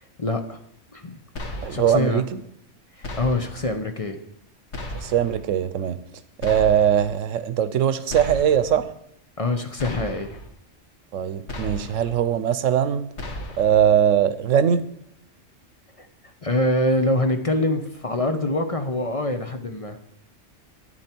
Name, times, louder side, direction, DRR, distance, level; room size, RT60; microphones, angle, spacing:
voice 1, 0.2-0.6 0.9-1.2 1.7-2.2 3.0-4.2 9.4-10.4 16.0-16.1 16.4-20.0, left 1 dB, 35° left, 6 dB, 0.8 m, -24 dB
sound 1, 1.4-2.0 3.0-3.7 4.7-5.4 6.4-7.1 8.1-8.8 9.8-10.5 11.5-12.2 13.2-13.9, left 1 dB, 60° left, 1.7 m, -35 dB
voice 2, 1.6-2.4 5.0-6.0 6.4-8.9 11.1-13.1 13.6-14.9, right 9 dB, 90° right, 13 dB, 1.1 m, -21 dB
11.5 x 9.7 x 4.5 m, 0.74 s
omnidirectional pair, 1.3 m